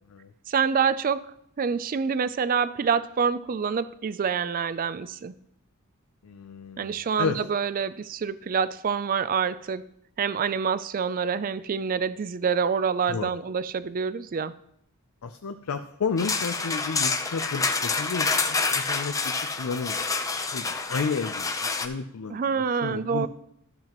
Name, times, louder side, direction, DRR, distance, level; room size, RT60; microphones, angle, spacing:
voice 1, 0.5-1.2 1.6-5.3 6.8-9.8 10.2-14.5 22.3-23.3, right 6 dB, 40° right, 15 dB, 0.4 m, -26 dB
voice 2, 6.2-7.4 13.1-13.3 15.2-23.3, left 5 dB, 85° left, 8 dB, 0.5 m, -32 dB
sound 1, 16.2-21.9, left 4 dB, 15° left, 0.5 m, -28 dB
13.0 x 7.6 x 3.0 m, 0.72 s
head